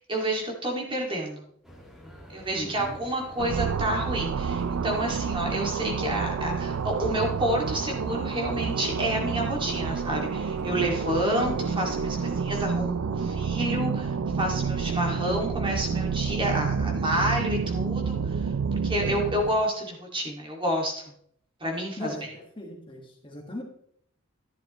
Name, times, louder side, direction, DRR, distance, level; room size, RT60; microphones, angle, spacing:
voice 1, 0.0-1.4 2.3-18.4 18.7-21.0 21.6-22.1, right 1 dB, 25° right, 0 dB, 2.3 m, -29 dB
sound 1, 1.6-12.4, equal, ahead, 1.9 m, -48 dB
voice 2, 2.5-3.0 16.8-17.1 19.4-19.5 22.0-23.6, left 1 dB, 25° left, 0 dB, 1.7 m, -39 dB
sound 2, 3.4-19.6, right 5 dB, 85° right, 0.5 m, -29 dB
11.5 x 11.0 x 3.1 m, 0.66 s
head